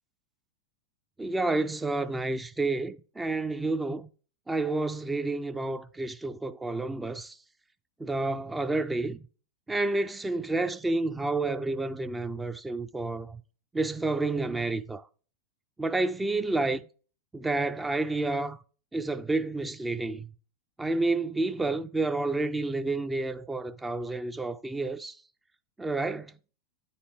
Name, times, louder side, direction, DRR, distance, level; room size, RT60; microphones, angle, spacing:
voice 1, 1.2-4.1 4.5-7.3 8.0-9.2 9.7-13.4 13.7-15.0 15.8-16.8 17.3-18.6 18.9-20.3 20.8-25.2 25.8-26.3, right 2 dB, 10° right, 0.3 m, -30 dB
9.6 x 4.1 x 2.9 m
figure-of-eight pair, 90°, 0 cm